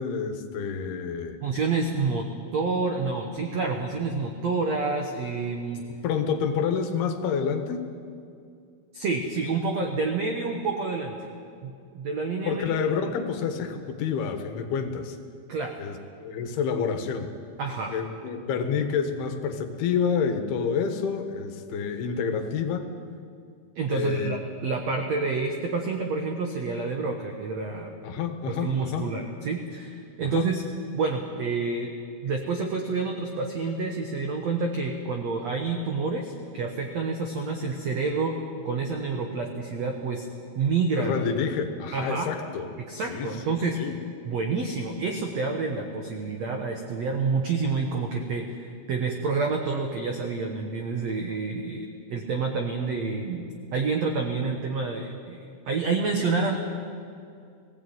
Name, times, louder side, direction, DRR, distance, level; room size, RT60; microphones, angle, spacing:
voice 1, 0.0-1.4 6.0-7.9 12.4-15.2 15.8-17.3 17.9-22.9 23.9-24.4 28.0-29.1 30.2-30.5 41.0-42.7 43.1-44.0, left 6 dB, 70° left, 6 dB, 3.1 m, -28 dB
voice 2, 1.4-2.3 2.5-5.8 8.9-11.2 11.6-12.8 15.5-15.7 17.6-17.9 23.7-27.9 28.5-30.6 30.9-31.9 32.2-38.4 38.6-40.3 40.5-41.1 41.9-42.3 42.9-43.8 44.2-53.4 53.7-55.4 55.7-56.6, right 4 dB, 75° right, 3 dB, 1.5 m, -28 dB
19.5 x 16.5 x 9.2 m, 2.4 s
omnidirectional pair, 5.0 m